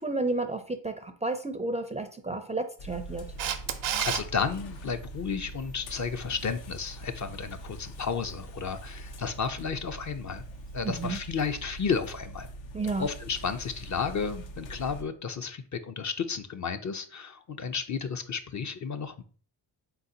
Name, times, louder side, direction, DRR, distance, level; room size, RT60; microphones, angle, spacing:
voice 1, 0.0-3.3 10.8-11.2 12.7-13.1, right 2 dB, 15° right, 7 dB, 0.4 m, -31 dB
sound 1, 2.8-15.0, right 1 dB, 75° left, 0.7 m, -43 dB
Camera, 3.4-4.2 10.9-11.0, right 10 dB, 80° right, 0.6 m, -29 dB
voice 2, 4.0-10.4 10.7-12.5 13.0-19.2, left 6 dB, 40° left, 8 dB, 0.5 m, -32 dB
3.9 x 3.8 x 2.7 m, 0.44 s
supercardioid pair, 60°, 45 cm